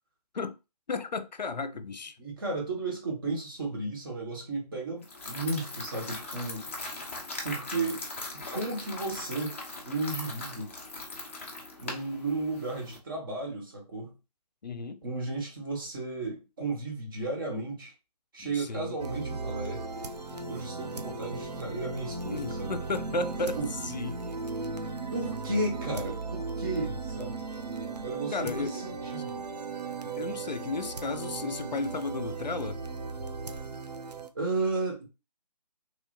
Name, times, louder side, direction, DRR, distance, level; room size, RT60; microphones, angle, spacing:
voice 1, 0.9-2.2 14.6-15.0 18.4-19.0 22.3-23.6 23.8-24.2 28.3-28.8 30.0-32.8, left 3 dB, 85° left, 0.4 m, -33 dB
voice 2, 2.2-6.7 7.4-8.0 8.3-9.6 9.8-10.7 11.8-14.1 15.0-17.9 18.3-19.8 20.5-22.8 23.6-23.7 25.1-27.4 28.0-29.5 34.3-35.1, right 2 dB, 30° right, 1.0 m, -34 dB
sound 1, 5.0-13.0, left 2 dB, 20° left, 0.4 m, -40 dB
sound 2, 19.0-34.3, right 4 dB, 75° right, 0.5 m, -37 dB
3.1 x 2.6 x 2.6 m
figure-of-eight pair, 150°, 21 cm